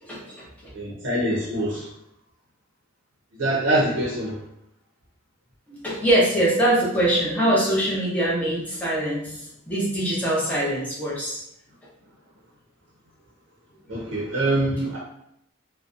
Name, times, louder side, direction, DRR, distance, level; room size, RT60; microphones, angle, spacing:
voice 1, 0.0-0.4 0.6-0.7 5.7-9.3 9.7-11.4, right 1 dB, 5° left, -7 dB, 0.7 m, -23 dB
voice 2, 0.7-1.9 3.4-4.4 13.9-15.0, right 1 dB, 65° right, -5 dB, 0.6 m, -24 dB
2.6 x 2.1 x 2.4 m, 0.77 s
head